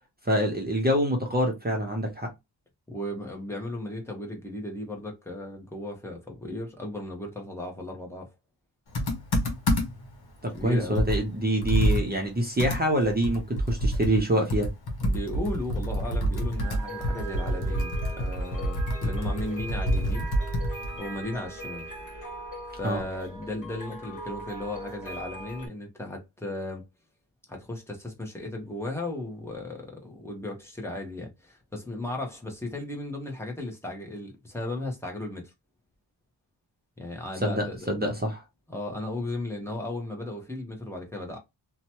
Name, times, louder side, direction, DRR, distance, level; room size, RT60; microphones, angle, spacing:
voice 1, 0.2-2.3 10.4-14.7 22.8-23.0 37.4-38.3, equal, 20° right, 0.7 m, -26 dB
voice 2, 2.9-8.3 10.5-11.0 15.0-20.3 21.0-21.9 22.8-26.8 27.5-35.5 37.0-38.2 38.7-41.4, left 1 dB, 5° left, 0.9 m, -35 dB
Computer keyboard, 8.9-10.1 10.6-10.7 11.0-14.2 14.5-21.0, equal, 60° left, 1.0 m, -27 dB
sound 1, 14.8-25.7, right 1 dB, 45° left, 1.4 m, -40 dB
2.8 x 2.2 x 2.8 m
wide cardioid pair, 130°, 43 cm